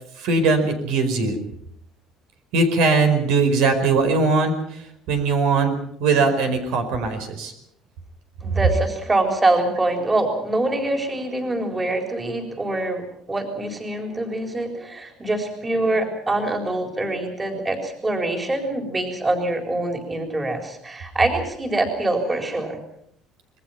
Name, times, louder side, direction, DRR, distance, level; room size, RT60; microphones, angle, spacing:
voice 1, 0.2-1.4 2.5-4.5 5.1-5.7 6.0-7.5, right 4 dB, 75° right, 7 dB, 4.8 m, -20 dB
voice 2, 8.4-22.8, right 2 dB, 15° right, 4 dB, 4.1 m, -24 dB
26.5 x 21.0 x 5.8 m, 0.69 s
cardioid pair, 150°, 0 cm